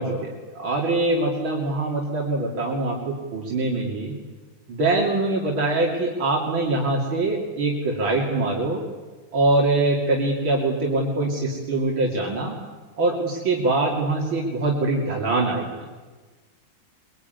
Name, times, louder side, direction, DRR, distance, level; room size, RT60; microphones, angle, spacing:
voice 1, 0.0-4.1 4.7-8.8 9.3-12.6 13.0-15.7, right 2 dB, 85° right, -2 dB, 3.7 m, -23 dB
24.0 x 22.5 x 9.4 m, 1.3 s
omnidirectional pair, 2.1 m